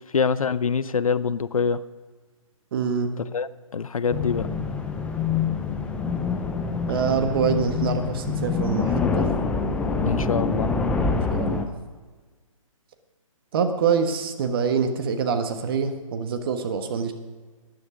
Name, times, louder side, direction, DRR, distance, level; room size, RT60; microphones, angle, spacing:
voice 1, 0.1-1.8 3.2-4.5 10.1-10.7, left 5 dB, 75° left, 17 dB, 0.6 m, -25 dB
voice 2, 2.7-3.1 6.9-9.3 11.3-11.7 13.5-17.1, right 6 dB, 40° right, 6 dB, 1.3 m, -25 dB
sound 1, 4.1-11.6, left 4 dB, 5° left, 0.5 m, -26 dB
13.5 x 9.9 x 5.1 m, 1.4 s
figure-of-eight pair, 135°, 18 cm